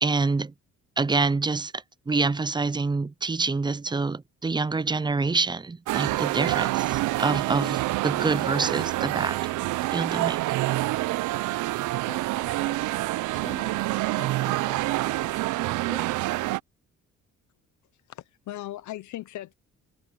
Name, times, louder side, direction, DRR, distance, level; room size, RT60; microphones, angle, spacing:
voice 1, 0.0-0.5 1.0-9.4 9.9-10.4, right 3 dB, 15° right, 0.5 m, -26 dB
sound 1, 5.9-16.6, right 18 dB, 80° right, 0.5 m, -27 dB
voice 2, 12.0-12.9 13.3-16.2, left 3 dB, 25° left, 2.3 m, -46 dB
voice 3, 17.9-19.5, left 14 dB, 70° left, 0.8 m, -38 dB
cardioid pair, 90°, 30 cm